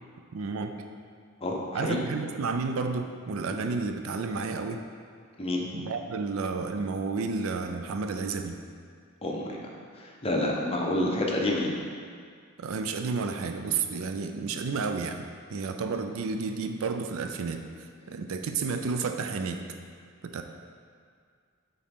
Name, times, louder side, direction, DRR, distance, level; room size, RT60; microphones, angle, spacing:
voice 1, 0.3-0.8 1.7-4.8 5.7-8.6 12.6-15.2 15.5-17.6 18.1-19.6 20.2-20.4, right 4 dB, 70° right, 6 dB, 0.4 m, -31 dB
voice 2, 1.4-2.0 5.4-5.7 9.2-9.5 10.0-11.7, left 1 dB, 30° left, -1 dB, 0.8 m, -28 dB
8.6 x 3.8 x 3.6 m, 2.1 s
head